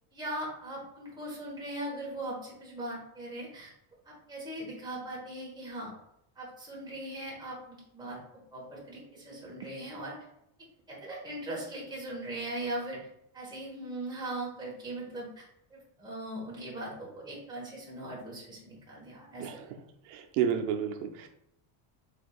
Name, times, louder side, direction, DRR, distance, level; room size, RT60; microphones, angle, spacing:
voice 1, 0.1-3.7 4.0-5.9 6.3-8.2 8.5-10.2 10.9-13.1 13.3-19.5, right 1 dB, 10° right, -5 dB, 1.4 m, -39 dB
voice 2, 20.1-21.3, right 8 dB, 85° right, 5 dB, 0.6 m, -31 dB
4.9 x 3.6 x 2.4 m, 0.77 s
cardioid pair, 155°, 46 cm